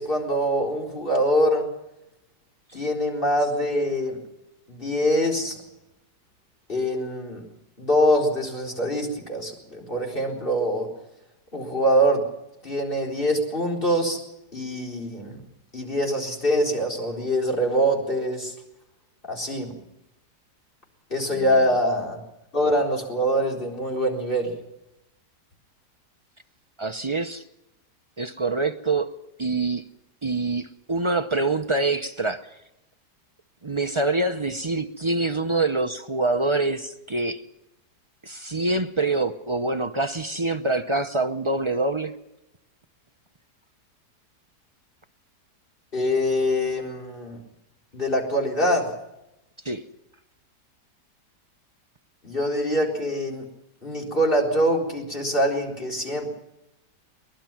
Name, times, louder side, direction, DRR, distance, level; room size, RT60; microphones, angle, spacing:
voice 1, 0.0-1.7 2.7-4.2 4.7-5.6 6.7-7.4 7.8-10.9 11.5-12.3 12.6-14.2 14.5-15.4 15.7-18.5 19.3-19.7 21.1-22.2 22.5-24.5 45.9-47.4 47.9-48.9 52.2-53.5 53.8-56.3, equal, 30° left, 1 dB, 4.4 m, -24 dB
voice 2, 21.3-21.8 26.8-27.4 28.2-29.1 29.4-29.8 30.2-32.6 33.6-37.4 38.2-42.1 49.6-49.8, right 2 dB, 35° right, 7 dB, 0.4 m, -25 dB
23.0 x 20.0 x 6.0 m, 0.88 s
omnidirectional pair, 1.8 m